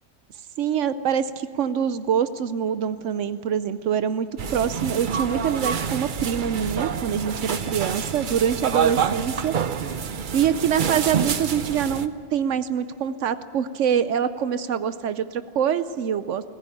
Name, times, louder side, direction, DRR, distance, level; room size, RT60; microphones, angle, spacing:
voice 1, 0.6-9.5 10.3-16.4, right 8 dB, 80° right, 13 dB, 1.0 m, -25 dB
sound 1, 4.4-12.1, right 7 dB, 50° right, 0.8 m, -27 dB
22.0 x 15.0 x 9.8 m, 2.4 s
omnidirectional pair, 1.2 m